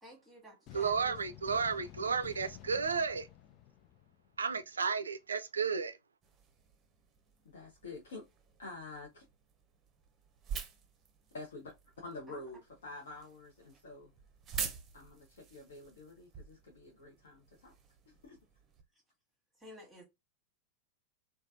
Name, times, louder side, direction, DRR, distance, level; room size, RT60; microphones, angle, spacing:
voice 1, 0.0-1.2 12.3-12.5 18.9-19.0 19.5-20.0, left 1 dB, 5° right, 1.2 m, -53 dB
sound 1, 0.7-4.6, left 12 dB, 35° left, 0.3 m, -52 dB
voice 2, 0.7-3.3 4.4-6.0, right 5 dB, 75° right, 0.3 m, -33 dB
sound 2, 6.2-18.8, right 6 dB, 25° right, 0.6 m, -47 dB
voice 3, 7.4-8.2 8.6-9.2 11.3-14.1 14.9-17.7 18.2-18.4, left 2 dB, 65° left, 0.7 m, -48 dB
3.2 x 2.2 x 2.6 m
figure-of-eight pair, 90°, 0 cm